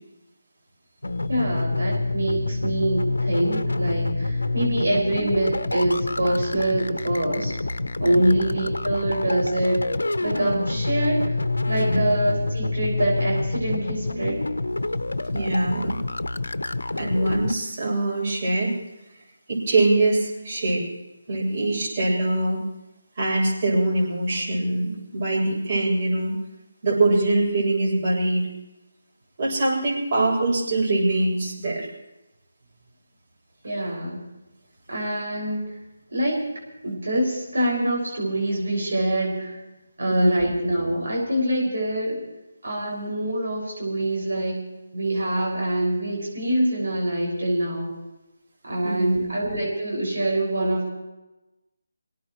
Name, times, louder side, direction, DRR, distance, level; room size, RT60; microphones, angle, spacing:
sound 1, 1.0-17.5, left 2 dB, 85° left, 1.0 m, -27 dB
voice 1, 1.3-7.5 8.0-9.9 10.2-11.4 11.6-14.4 33.6-34.2 34.9-35.7 36.1-36.5 36.8-39.6 40.0-42.2 42.6-44.6 44.9-47.9 48.6-50.9, right 1 dB, 75° right, -2 dB, 6.2 m, -25 dB
voice 2, 15.3-16.0 16.9-18.7 19.5-20.8 21.3-22.6 23.2-26.3 26.8-28.5 29.4-31.9 40.1-40.4 48.8-49.2, right 2 dB, 40° right, -3 dB, 8.0 m, -23 dB
24.5 x 18.0 x 3.2 m, 1.0 s
figure-of-eight pair, 155°, 0 cm